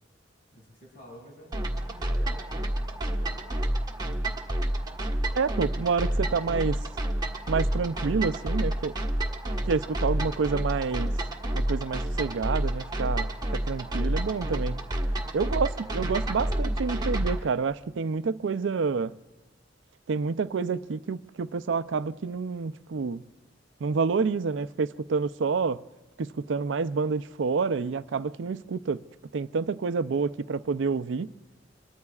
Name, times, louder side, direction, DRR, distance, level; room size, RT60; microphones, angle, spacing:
voice 1, 0.5-3.4, equal, 50° left, 5.9 m, -50 dB
sound 1, 1.5-17.4, right 1 dB, 20° right, 1.3 m, -29 dB
voice 2, 5.3-6.8 7.5-8.9 9.6-11.1 11.5-14.8 15.3-19.1 20.1-23.2 23.8-25.8 26.2-29.0 29.3-31.3, right 5 dB, 70° right, 0.5 m, -28 dB
25.5 x 23.0 x 2.4 m
head